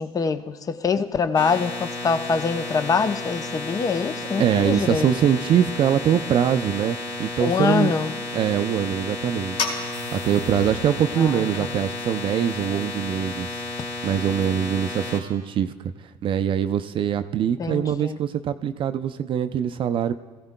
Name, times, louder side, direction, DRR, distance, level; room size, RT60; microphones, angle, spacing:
voice 1, 0.0-5.1 7.4-8.1 11.2-11.7 17.6-18.2, left 5 dB, 25° left, 0.6 m, -24 dB
sound 1, 1.3-15.2, left 2 dB, 55° left, 3.1 m, -33 dB
voice 2, 4.4-7.9 8.3-9.7 10.1-13.6 14.0-15.9 16.2-20.2, right 9 dB, 40° right, 0.4 m, -23 dB
sound 2, 9.5-15.3, left 4 dB, 70° left, 2.3 m, -37 dB
19.5 x 15.5 x 2.2 m
supercardioid pair, 110°, 13 cm